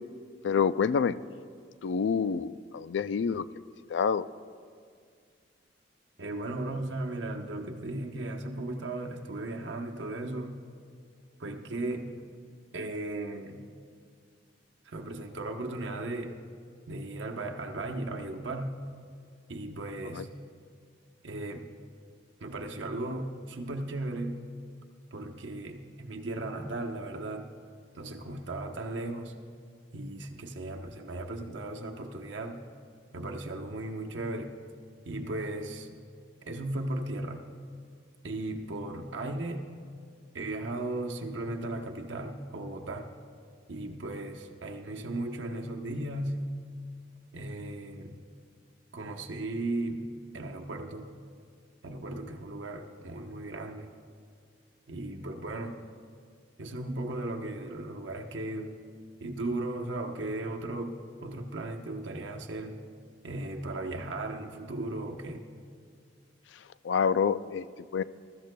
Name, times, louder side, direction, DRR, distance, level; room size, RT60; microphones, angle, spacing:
voice 1, 0.4-1.1 1.8-3.5 3.9-4.3 20.2-20.3 66.8-67.7 67.9-68.0, left 6 dB, 70° left, 15 dB, 0.4 m, -27 dB
voice 2, 6.2-10.6 11.4-12.3 12.7-13.6 14.8-16.3 16.9-18.8 19.5-20.3 21.2-21.7 22.4-24.4 25.1-27.5 27.9-29.3 29.9-32.6 33.1-34.5 35.0-36.0 36.4-37.5 38.2-39.7 40.3-43.1 43.7-46.5 47.3-48.2 48.9-51.1 51.8-53.9 54.9-55.8 56.6-58.7 59.2-62.8 63.2-65.5, right 2 dB, 80° right, 3 dB, 0.9 m, -36 dB
22.0 x 13.5 x 2.2 m, 2.1 s
head